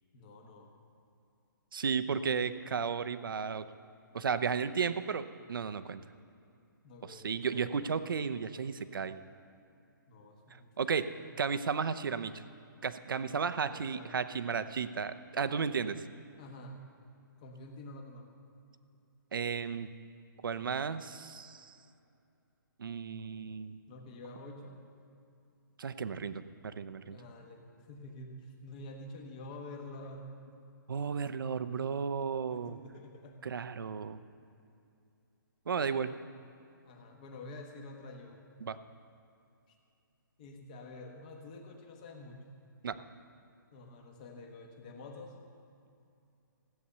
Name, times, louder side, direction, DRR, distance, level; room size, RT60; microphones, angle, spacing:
voice 1, 0.1-0.7 6.8-7.9 10.1-10.7 10.9-11.2 13.2-14.2 16.4-16.8 17.4-18.3 23.9-24.8 27.1-30.3 32.5-33.4 35.8-36.3 36.8-38.4 39.7-39.8 40.4-42.6 43.7-45.3, left 2 dB, 20° left, 3 dB, 1.1 m, -48 dB
voice 2, 1.7-3.7 4.1-6.0 7.0-9.2 10.8-11.1 11.4-12.4 12.8-16.0 19.3-19.9 20.4-21.8 22.8-23.8 25.8-27.2 30.9-32.8 33.4-34.2 35.7-36.1 38.6-38.8 42.8-43.0, right 6 dB, 75° right, 12 dB, 0.7 m, -34 dB
16.0 x 8.4 x 6.8 m, 2.6 s
hypercardioid pair, 175°, 11 cm